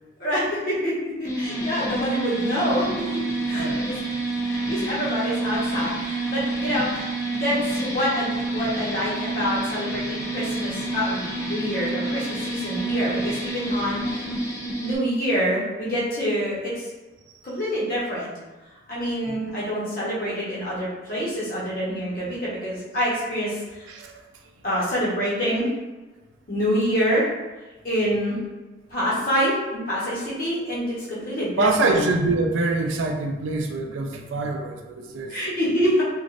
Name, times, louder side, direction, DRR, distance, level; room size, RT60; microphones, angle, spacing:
voice 1, 0.2-2.9 3.1-3.9 4.5-14.3 14.7-16.9 17.4-18.3 18.9-23.9 24.6-25.7 26.5-27.3 27.8-28.4 28.9-32.0 35.3-36.0, equal, 50° left, -8 dB, 1.1 m, -26 dB
sound 1, 1.3-15.0, right 2 dB, 15° left, 0.4 m, -28 dB
voice 2, 3.5-3.9 17.3-17.4 19.3-19.4 23.9-24.3 31.6-35.5, right 2 dB, 90° right, 3 dB, 0.4 m, -25 dB
3.0 x 2.5 x 2.5 m, 1.2 s
head